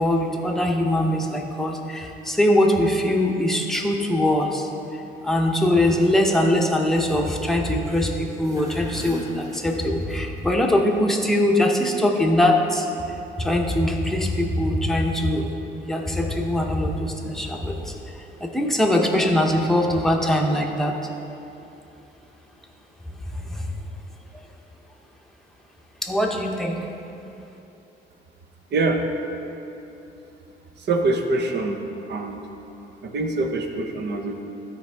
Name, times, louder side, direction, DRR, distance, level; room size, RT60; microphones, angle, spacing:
voice 1, 0.0-12.9 13.4-15.5 15.7-20.9 23.3-23.8 26.0-26.9, left 1 dB, ahead, 0 dB, 0.9 m, -22 dB
sound 1, 8.4-10.4, left 1 dB, 15° right, 1.5 m, -40 dB
voice 2, 30.8-31.8 32.1-32.4 33.0-34.4, right 2 dB, 60° right, 4 dB, 0.9 m, -24 dB
12.5 x 4.7 x 3.5 m, 2.9 s
cardioid pair, 90°, 20 cm